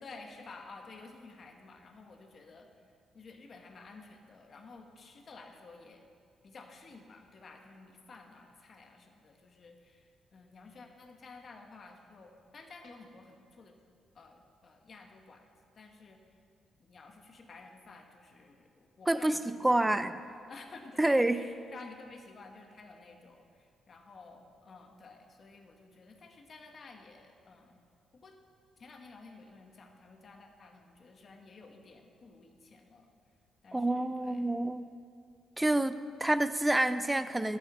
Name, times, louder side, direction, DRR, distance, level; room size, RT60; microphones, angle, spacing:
voice 1, 0.0-2.7 3.1-6.0 6.4-13.7 14.1-15.4 15.7-16.2 16.8-20.1 20.5-27.8 28.2-28.4 28.8-33.1 33.6-34.4, left 3 dB, 40° left, 3 dB, 1.4 m, -52 dB
voice 2, 19.1-20.1 21.0-21.4 33.7-34.8 35.6-37.6, right 1 dB, 10° right, 13 dB, 0.4 m, -28 dB
12.0 x 7.9 x 6.2 m, 2.3 s
cardioid pair, 125°, 0 cm